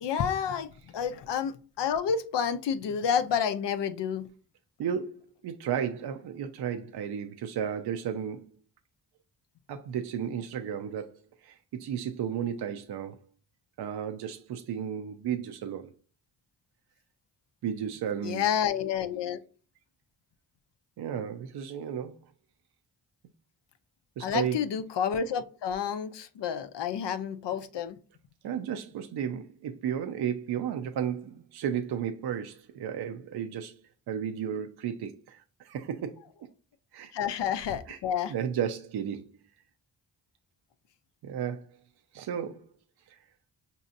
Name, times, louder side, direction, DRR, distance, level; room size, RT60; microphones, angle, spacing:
voice 1, 0.0-4.3 18.2-19.4 24.2-28.0 37.1-38.3, left 8 dB, 70° left, 0.6 m, -30 dB
voice 2, 4.8-8.5 9.7-13.2 13.8-15.9 17.6-18.4 21.0-22.2 24.2-24.6 28.4-36.5 36.9-37.1 37.9-38.0 38.3-39.4 41.2-41.7 42.1-42.6 43.1-43.2, right 8 dB, 65° right, 0.5 m, -33 dB
5.3 x 2.8 x 2.5 m
cardioid pair, 50°, 43 cm